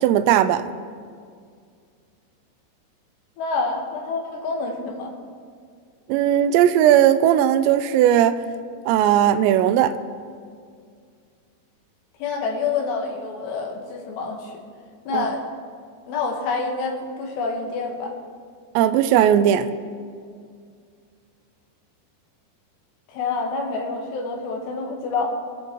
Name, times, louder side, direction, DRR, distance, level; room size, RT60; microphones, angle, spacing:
voice 1, 0.0-0.7 6.1-8.4 8.9-10.0 15.1-15.3 18.8-19.7, right 10 dB, 85° right, 11 dB, 2.8 m, -17 dB
voice 2, 3.4-5.1 12.2-14.5 15.1-15.4 16.1-18.2 23.1-25.2, left 4 dB, 75° left, 1 dB, 3.7 m, -27 dB
25.5 x 11.0 x 3.1 m, 2.2 s
omnidirectional pair, 5.0 m